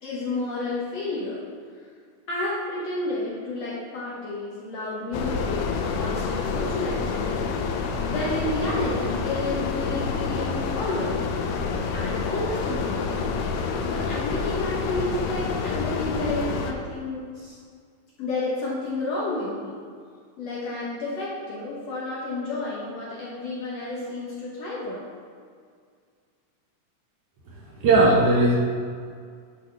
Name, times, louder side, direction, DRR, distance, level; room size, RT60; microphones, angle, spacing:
voice 1, 0.0-1.4 2.3-7.3 8.0-11.1 11.9-13.2 13.8-17.6 18.2-19.8 20.4-25.0, left 2 dB, 65° left, -7 dB, 1.8 m, -31 dB
sound 1, 5.1-16.7, left 5 dB, 80° left, 2.1 m, -28 dB
voice 2, 27.8-28.5, right 2 dB, 65° right, -4 dB, 2.2 m, -17 dB
10.0 x 5.5 x 3.4 m, 2.1 s
omnidirectional pair, 4.1 m